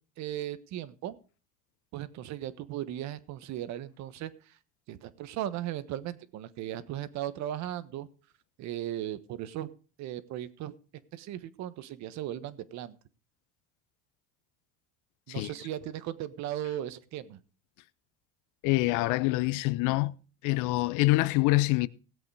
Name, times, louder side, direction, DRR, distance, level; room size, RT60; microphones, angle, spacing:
voice 1, 0.2-1.2 1.9-4.3 4.9-8.1 8.6-9.7 10.0-10.7 11.1-13.0 15.3-17.4, right 12 dB, 60° right, 1.3 m, -37 dB
voice 2, 18.6-20.1 20.4-21.9, left 20 dB, 75° left, 0.9 m, -25 dB
17.5 x 7.9 x 4.8 m
supercardioid pair, 110°, 31 cm